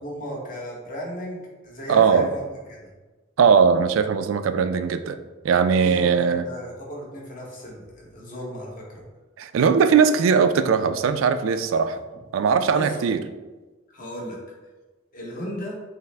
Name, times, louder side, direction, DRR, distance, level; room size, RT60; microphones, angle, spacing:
voice 1, 0.0-2.9 5.8-9.0 12.7-13.0 13.9-14.4 15.1-15.8, equal, 40° left, -3 dB, 1.0 m, -35 dB
voice 2, 1.9-2.3 3.4-5.2 5.4-6.4 9.4-12.0 12.3-13.2, right 6 dB, 80° right, 10 dB, 0.3 m, -19 dB
5.6 x 2.0 x 3.2 m, 1.2 s
head